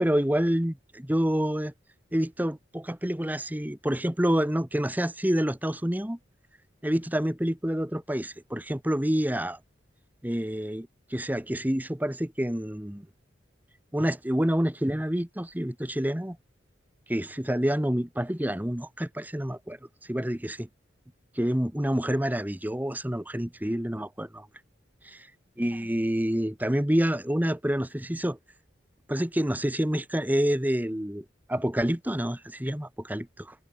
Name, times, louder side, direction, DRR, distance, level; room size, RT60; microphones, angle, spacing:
voice 1, 0.0-1.7 2.1-6.2 6.8-9.6 10.2-13.1 13.9-16.4 17.1-19.8 20.1-20.7 21.4-24.5 25.6-28.4 29.1-33.5, equal, 10° right, 1.1 m, -28 dB
open air
head